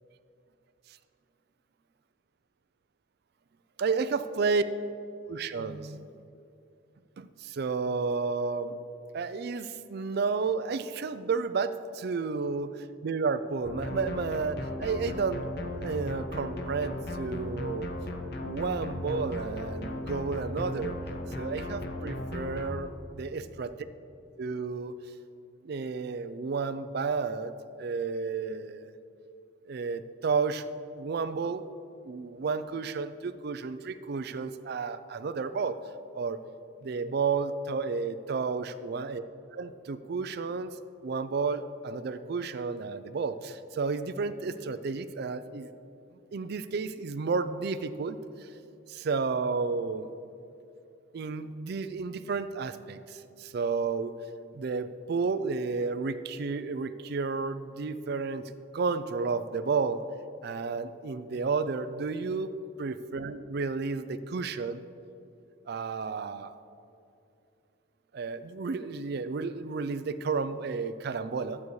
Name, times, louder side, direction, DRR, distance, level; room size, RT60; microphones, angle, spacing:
voice 1, 3.8-4.6 5.3-6.1 7.2-8.8 9.1-15.5 15.8-17.9 18.4-21.0 21.4-23.7 24.4-24.9 25.6-27.5 27.8-28.9 29.7-30.7 30.9-31.7 32.0-35.8 36.1-36.4 36.8-39.2 39.5-40.8 41.0-45.7 46.3-48.5 48.9-50.1 51.1-54.1 54.5-60.0 60.4-64.8 65.7-66.5 68.1-71.6, right 4 dB, 55° right, 12 dB, 0.4 m, -32 dB
sound 1, 13.6-22.7, left 1 dB, 55° left, 0.7 m, -36 dB
12.0 x 8.3 x 3.1 m, 2.7 s
head